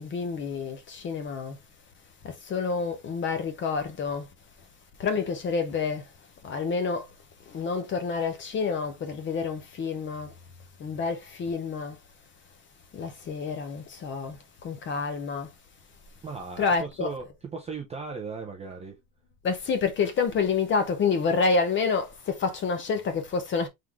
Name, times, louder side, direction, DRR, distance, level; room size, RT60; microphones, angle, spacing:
voice 1, 0.0-1.6 2.2-4.3 5.0-6.1 6.4-7.1 7.5-10.3 10.8-12.0 12.9-15.5 16.6-17.1 19.4-23.7, left 5 dB, 25° left, 0.6 m, -28 dB
voice 2, 16.2-19.0, right 4 dB, 15° right, 0.4 m, -37 dB
3.8 x 3.6 x 2.9 m
cardioid pair, 150°, 47 cm